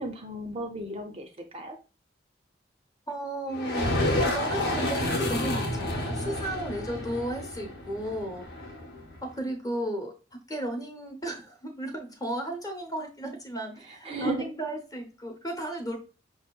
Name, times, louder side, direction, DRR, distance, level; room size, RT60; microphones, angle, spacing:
voice 1, 0.0-1.8 13.9-14.5, right 1 dB, 30° right, 4 dB, 0.4 m, -34 dB
voice 2, 3.1-8.6 9.2-10.1 10.5-16.0, right 1 dB, 20° left, 3 dB, 0.7 m, -34 dB
sound 1, 3.5-9.2, left 1 dB, 60° left, 0.8 m, -30 dB
5.2 x 2.7 x 2.2 m, 0.33 s
head